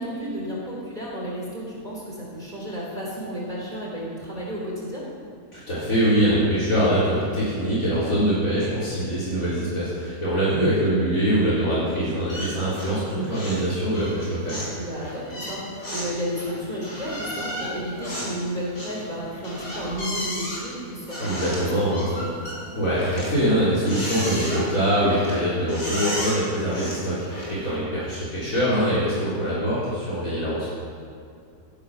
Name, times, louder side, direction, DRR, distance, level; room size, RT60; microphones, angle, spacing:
voice 1, 0.0-5.0 14.7-22.3, equal, 25° right, -5 dB, 3.5 m, -32 dB
voice 2, 5.5-14.6 21.2-22.2 22.7-30.7, equal, 55° left, -9 dB, 4.1 m, -23 dB
sound 1, 12.3-13.0 13.3-13.7 13.9-27.7, equal, 80° left, 5.0 m, -34 dB
14.5 x 11.5 x 5.5 m, 2.4 s
omnidirectional pair, 1.7 m